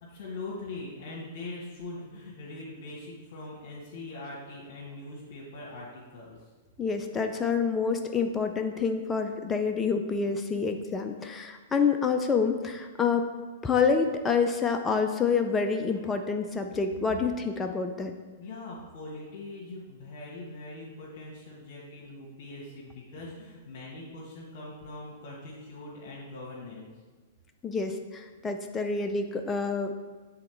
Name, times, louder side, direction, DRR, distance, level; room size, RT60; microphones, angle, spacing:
voice 1, 0.0-6.5 15.8-16.1 18.4-26.9, left 2 dB, 55° left, -5 dB, 1.5 m, -42 dB
voice 2, 6.8-13.3 13.6-18.1 27.6-29.9, left 5 dB, 15° left, 5 dB, 0.5 m, -27 dB
7.7 x 4.0 x 4.5 m, 1.4 s
figure-of-eight pair, 110°, 0 cm